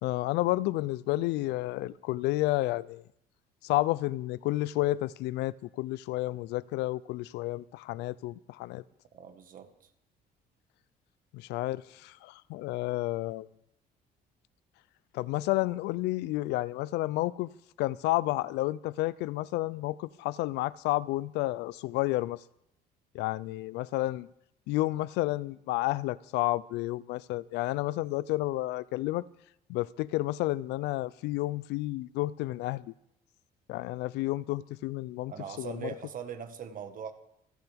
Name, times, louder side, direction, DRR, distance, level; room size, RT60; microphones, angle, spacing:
voice 1, 0.0-3.0 3.6-8.8 11.3-13.5 15.1-17.5 17.8-22.4 23.1-24.3 24.7-29.3 29.7-32.9 33.7-35.3 35.6-35.9, left 17 dB, 85° left, 0.5 m, -31 dB
voice 2, 9.1-9.9 35.3-37.1, right 7 dB, 55° right, 1.6 m, -41 dB
28.0 x 10.5 x 3.5 m
cardioid pair, 110°, 17 cm